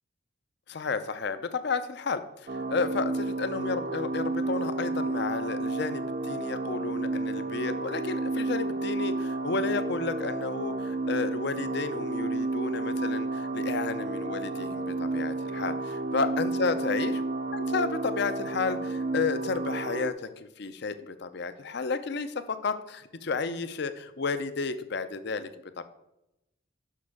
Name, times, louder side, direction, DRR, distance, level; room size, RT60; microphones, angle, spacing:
voice 1, 0.7-17.2 17.5-25.5 25.8-25.9, left 4 dB, 60° left, 11 dB, 0.6 m, -32 dB
sound 1, 2.5-20.1, right 2 dB, 40° right, 0.4 m, -31 dB
6.6 x 6.0 x 4.8 m, 0.89 s
head